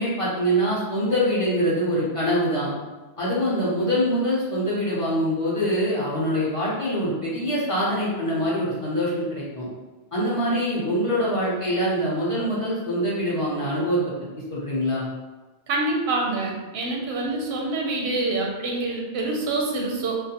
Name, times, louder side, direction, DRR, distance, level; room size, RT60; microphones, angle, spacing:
voice 1, 0.0-2.7 3.2-9.7 10.1-14.0 14.5-15.0, equal, 40° left, -7 dB, 0.6 m, -24 dB
voice 2, 15.7-20.1, right 2 dB, 80° right, -1 dB, 0.8 m, -26 dB
2.5 x 2.3 x 2.8 m, 1.2 s
omnidirectional pair, 1.1 m